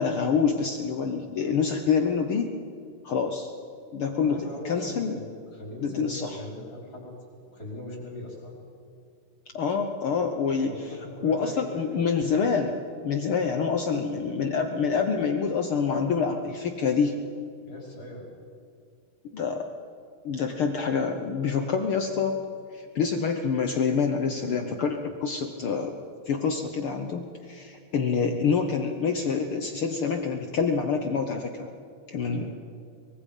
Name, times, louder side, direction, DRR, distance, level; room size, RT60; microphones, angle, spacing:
voice 1, 0.0-2.5 3.0-3.5 3.9-4.4 4.6-5.2 5.8-6.4 9.5-10.7 11.2-12.7 13.0-17.2 19.3-19.7 20.2-22.4 22.7-25.9 26.3-31.7 32.1-32.5, left 5 dB, 70° left, 5 dB, 1.3 m, -26 dB
voice 2, 1.3-1.6 4.2-7.0 7.5-8.6 10.6-12.0 17.6-18.3 32.2-32.5, left 1 dB, 25° left, -3 dB, 5.8 m, -40 dB
24.0 x 22.5 x 5.4 m, 2.4 s
omnidirectional pair, 4.0 m